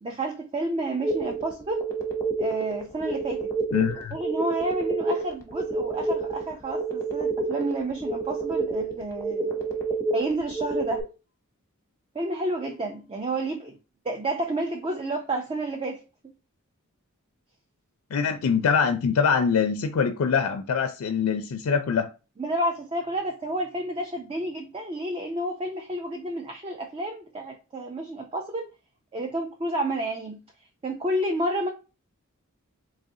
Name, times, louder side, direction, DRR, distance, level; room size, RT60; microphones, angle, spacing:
voice 1, 0.0-1.8 2.4-3.5 4.1-9.8 10.1-11.0 12.1-13.8 14.0-16.0 22.4-28.7 29.1-30.4 30.8-31.7, right 1 dB, 25° right, 0.4 m, -30 dB
sound 1, 1.0-11.0, right 3 dB, 15° left, 0.8 m, -29 dB
voice 2, 3.7-4.2 18.1-22.1, left 6 dB, 70° left, 0.4 m, -24 dB
4.0 x 3.1 x 2.6 m
head